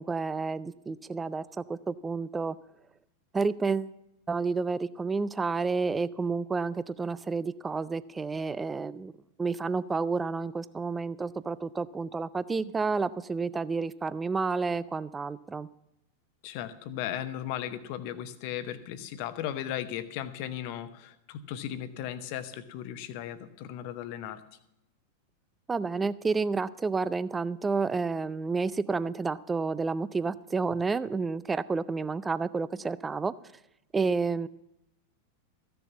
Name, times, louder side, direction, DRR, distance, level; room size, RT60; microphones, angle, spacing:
voice 1, 0.0-2.6 3.3-4.0 4.3-9.1 9.4-15.7 25.7-33.3 33.9-34.5, right 4 dB, 15° right, 17 dB, 0.4 m, -30 dB
voice 2, 16.4-24.4, left 11 dB, 45° left, 11 dB, 1.0 m, -36 dB
14.5 x 6.9 x 7.4 m, 0.85 s
figure-of-eight pair, 90°, 0 cm